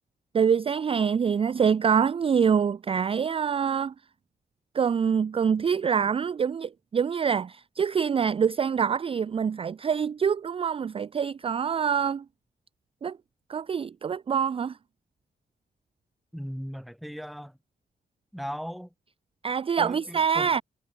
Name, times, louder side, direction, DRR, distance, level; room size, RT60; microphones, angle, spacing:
voice 1, 0.3-3.9 4.7-12.2 13.0-13.2 13.5-14.8 19.4-20.6, right 7 dB, 35° right, 0.4 m, -25 dB
voice 2, 16.3-17.6 18.3-18.9 19.8-20.5, equal, ahead, 2.0 m, -37 dB
cardioid pair, 75°, 17 cm